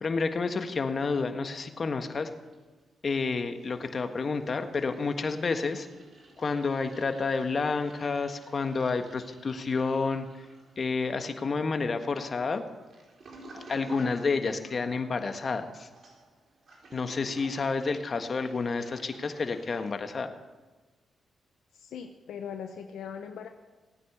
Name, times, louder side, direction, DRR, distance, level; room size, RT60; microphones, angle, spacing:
voice 1, 0.0-2.3 3.0-5.9 6.4-10.3 10.8-12.6 13.7-15.9 16.9-20.3, left 4 dB, 50° left, 7 dB, 1.6 m, -30 dB
Toilet flush, 2.3-3.2 3.4-19.9, right 2 dB, 60° right, 4.2 m, -54 dB
voice 2, 21.7-23.5, left 7 dB, 80° left, 6 dB, 0.8 m, -40 dB
18.5 x 9.5 x 6.9 m, 1.3 s
supercardioid pair, 50°, 0 cm